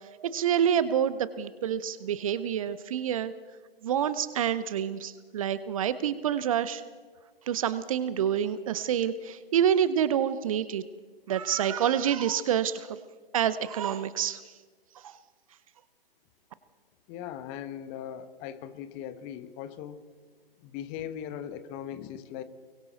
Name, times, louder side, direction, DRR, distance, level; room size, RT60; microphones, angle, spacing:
voice 1, 0.1-3.3 3.8-6.8 7.5-10.8 11.3-12.9 13.3-14.4 15.0-15.1, right 9 dB, 35° right, 15 dB, 0.9 m, -27 dB
voice 2, 17.1-20.1 20.6-22.4, left 9 dB, 20° left, 11 dB, 1.2 m, -39 dB
29.5 x 23.0 x 4.1 m, 1.5 s
figure-of-eight pair, 130°, 30 cm